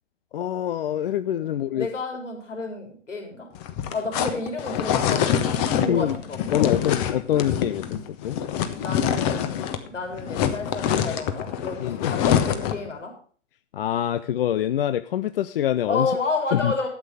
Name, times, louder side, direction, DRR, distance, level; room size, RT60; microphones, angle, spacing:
voice 1, 0.3-1.9 5.9-6.2 6.5-7.8 8.2-8.4 11.8-12.1 13.7-16.1 16.5-16.9, left 11 dB, 50° left, 13 dB, 0.6 m, -25 dB
voice 2, 1.3-3.5 3.9-6.4 8.7-9.5 9.9-11.8 12.1-13.1 15.9-16.9, left 3 dB, 75° left, 2 dB, 4.2 m, -30 dB
sound 1, 3.5-9.9 10.1-12.9, left 9 dB, 35° left, 1.3 m, -25 dB
12.5 x 8.3 x 5.0 m, 0.43 s
figure-of-eight pair, 110°, 37 cm